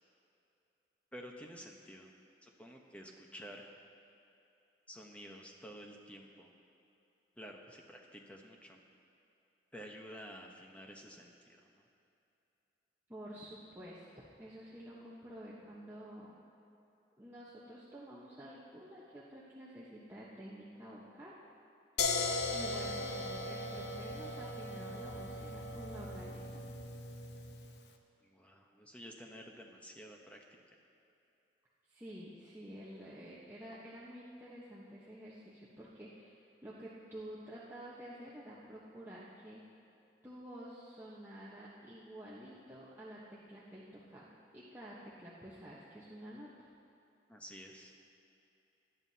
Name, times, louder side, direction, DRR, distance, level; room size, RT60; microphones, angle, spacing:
voice 1, 1.1-2.1 2.4-3.7 4.9-6.5 7.4-8.8 9.7-11.8 22.7-22.9 28.2-30.4 47.3-47.9, equal, 10° left, 1 dB, 1.0 m, -51 dB
voice 2, 13.1-14.0 14.4-16.3 17.2-21.4 22.5-26.6 31.9-36.3 36.6-39.6 40.2-46.7, equal, 15° right, -8 dB, 1.1 m, -50 dB
sound 1, 22.0-27.8, left 3 dB, 75° left, 0.8 m, -38 dB
18.5 x 11.0 x 2.8 m, 2.8 s
head